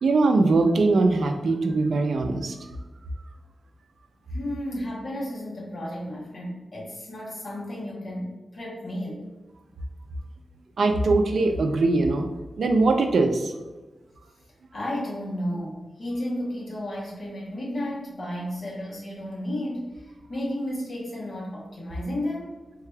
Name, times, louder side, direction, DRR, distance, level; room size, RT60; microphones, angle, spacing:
voice 1, 0.0-2.7 10.8-12.3 12.6-13.5, right 3 dB, 75° right, 5 dB, 0.4 m, -21 dB
voice 2, 4.3-9.3 14.7-22.5, left 1 dB, 45° left, -4 dB, 1.1 m, -33 dB
3.7 x 2.3 x 3.2 m, 1.2 s
wide cardioid pair, 175°, 0 cm